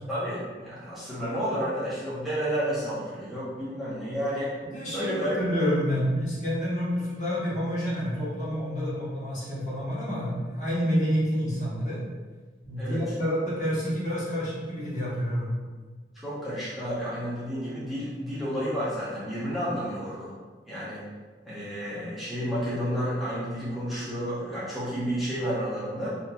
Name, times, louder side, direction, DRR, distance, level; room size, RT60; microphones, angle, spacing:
voice 1, 0.1-4.5 4.9-5.4 12.8-13.0 16.1-20.3 20.6-21.0 21.4-26.1, equal, ahead, -11 dB, 0.8 m, -31 dB
voice 2, 4.7-12.0 12.6-15.5, equal, 45° left, -8 dB, 1.2 m, -28 dB
5.3 x 2.8 x 2.3 m, 1.4 s
head